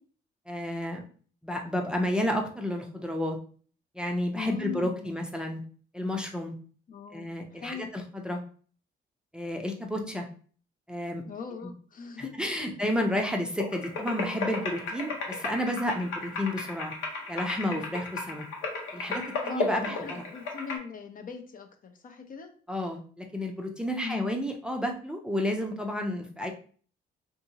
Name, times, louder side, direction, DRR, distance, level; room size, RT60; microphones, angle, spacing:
voice 1, 0.5-1.0 1.4-3.4 4.0-5.6 5.9-6.5 7.1-8.4 9.3-10.3 10.9-11.2 12.2-16.9 17.3-18.5 18.9-20.2 22.7-26.5, left 1 dB, 5° right, 2 dB, 0.5 m, -31 dB
voice 2, 4.3-5.1 6.9-7.9 11.3-12.8 19.5-22.5 24.0-24.3, left 6 dB, 45° left, 5 dB, 0.5 m, -40 dB
sound 1, 13.6-20.8, left 3 dB, 85° left, 0.8 m, -35 dB
2.7 x 2.7 x 2.7 m, 0.44 s
cardioid pair, 90°, 20 cm